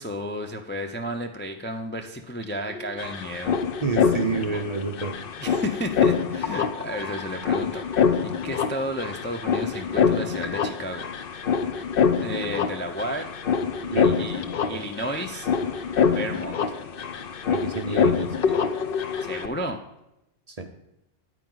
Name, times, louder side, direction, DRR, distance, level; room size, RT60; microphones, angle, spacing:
voice 1, 0.0-3.6 5.4-11.1 12.2-13.3 14.0-15.5 16.1-16.8 19.2-19.8, equal, 15° left, 4 dB, 0.5 m, -33 dB
sound 1, 2.4-2.5 2.7-19.5, left 6 dB, 55° left, 0.8 m, -25 dB
voice 2, 3.8-5.2 13.9-14.3 14.6-14.8 17.5-18.5 20.5-20.7, right 4 dB, 35° right, 5 dB, 0.8 m, -29 dB
9.5 x 9.0 x 3.9 m, 0.87 s
omnidirectional pair, 1.2 m